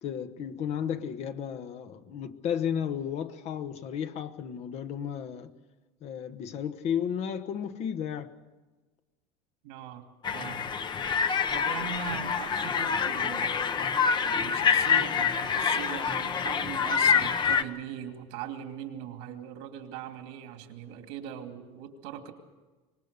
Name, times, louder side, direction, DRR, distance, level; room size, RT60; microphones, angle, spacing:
voice 1, 0.0-5.5 6.0-8.4, left 8 dB, 55° left, 1.2 m, -33 dB
voice 2, 9.6-10.0 10.3-10.7 11.5-13.5 14.3-22.3, right 9 dB, 85° right, 2.5 m, -40 dB
sound 1, 10.2-17.6, left 6 dB, 35° left, 1.0 m, -26 dB
24.5 x 19.5 x 6.7 m
supercardioid pair, 115°, 13 cm